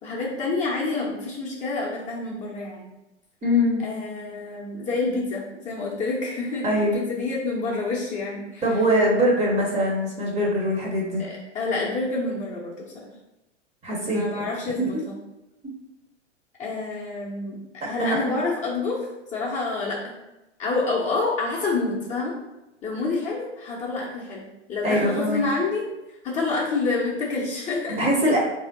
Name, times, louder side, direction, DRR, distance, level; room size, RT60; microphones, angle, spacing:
voice 1, 0.0-2.9 3.8-8.6 11.2-13.1 14.1-15.2 16.6-19.1 19.3-20.1 20.6-22.3 22.8-25.8 26.2-28.0, left 3 dB, 20° left, -4 dB, 0.7 m, -28 dB
voice 2, 3.4-3.8 6.6-7.0 8.6-11.3 13.8-14.3 18.0-18.2 24.8-25.4 28.0-28.4, equal, 20° right, -2 dB, 0.8 m, -22 dB
3.4 x 2.7 x 3.9 m, 0.95 s
figure-of-eight pair, 100°, 36 cm